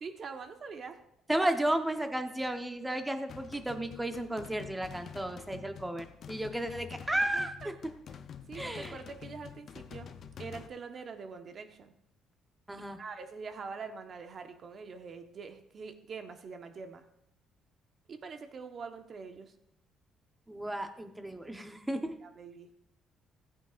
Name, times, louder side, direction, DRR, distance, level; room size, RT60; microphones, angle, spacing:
voice 1, 0.0-1.0 7.1-7.7 8.5-10.1 10.4-11.9 12.8-17.1 18.1-19.5 21.9-22.7, right 5 dB, 45° right, 6 dB, 1.2 m, -44 dB
voice 2, 1.3-7.7 8.5-8.9 12.7-13.0 20.5-22.1, right 1 dB, 10° right, 7 dB, 1.1 m, -33 dB
sound 1, 3.3-10.7, left 7 dB, 55° left, 0.7 m, -47 dB
16.0 x 8.9 x 2.6 m, 0.79 s
cardioid pair, 105°, 0 cm